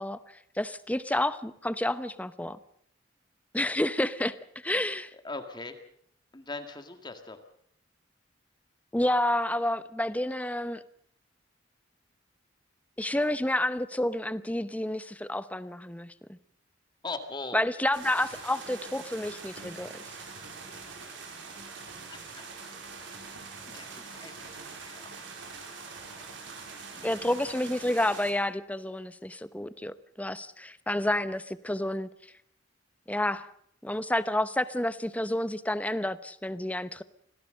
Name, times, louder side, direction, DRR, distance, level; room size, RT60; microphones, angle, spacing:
voice 1, 0.0-2.6 3.5-4.4 4.6-5.1 8.9-10.8 13.0-16.4 17.5-20.2 27.0-32.1 33.1-33.5 33.8-37.0, left 1 dB, 10° left, 14 dB, 0.8 m, -30 dB
voice 2, 5.2-5.8 6.3-7.4 17.0-17.6 22.1-22.5 23.7-25.6 26.9-27.1, left 3 dB, 25° left, 7 dB, 2.0 m, -41 dB
sound 1, 17.9-28.3, right 4 dB, 80° right, 5.1 m, -44 dB
26.0 x 17.0 x 6.6 m, 0.68 s
head